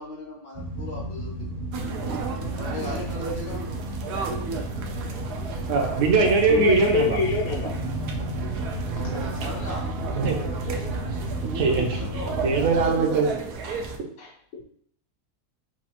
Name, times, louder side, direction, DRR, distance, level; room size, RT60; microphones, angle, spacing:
voice 1, 0.0-1.6 2.5-3.7 8.7-8.8 9.4-9.9 11.9-12.4, left 2 dB, 85° left, -5 dB, 2.2 m, -38 dB
sound 1, 0.5-12.9, right 1 dB, 45° right, 0.5 m, -32 dB
sound 2, 1.7-14.0, right 4 dB, 85° right, 1.2 m, -34 dB
voice 2, 5.7-7.2 10.2-10.4 11.5-12.0 12.4-13.4 13.6-13.8, right 4 dB, 65° right, 2 dB, 1.0 m, -21 dB
voice 3, 6.2-7.8 8.9-9.3 14.2-14.6, left 5 dB, 70° left, -2 dB, 1.1 m, -28 dB
6.0 x 2.3 x 2.9 m, 0.65 s
omnidirectional pair, 1.6 m